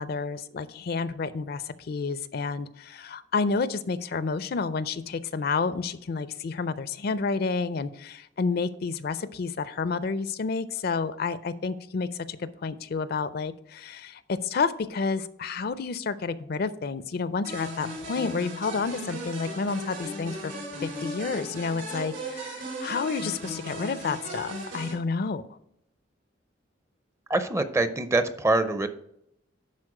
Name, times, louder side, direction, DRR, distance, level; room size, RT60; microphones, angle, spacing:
voice 1, 0.0-20.5 20.8-25.4, left 4 dB, 55° left, 14 dB, 0.4 m, -30 dB
sound 1, 17.4-24.9, equal, 80° right, 2.9 m, -37 dB
voice 2, 27.3-28.9, right 2 dB, 15° right, 10 dB, 0.5 m, -24 dB
11.0 x 4.2 x 4.9 m, 0.77 s
head